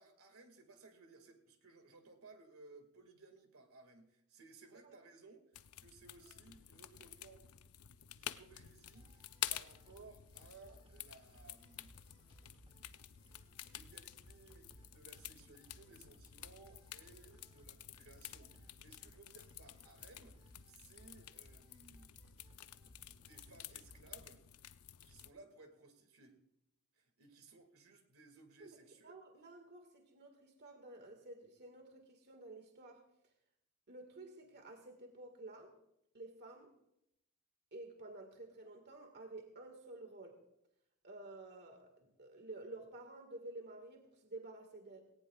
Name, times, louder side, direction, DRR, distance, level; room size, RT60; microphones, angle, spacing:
voice 1, 0.0-7.6 8.1-11.9 13.6-22.1 23.0-24.4 25.0-26.4 26.9-29.1, right 3 dB, 70° right, 6 dB, 2.1 m, -60 dB
sound 1, 5.5-25.3, left 12 dB, 80° left, 0.6 m, -50 dB
sound 2, 8.9-24.3, right 1 dB, 25° right, 1.6 m, -64 dB
voice 2, 29.0-33.0 33.9-35.7 36.1-36.7 37.7-40.4 41.0-45.0, right 2 dB, 50° right, 5 dB, 1.8 m, -52 dB
18.5 x 18.0 x 2.4 m, 0.79 s
head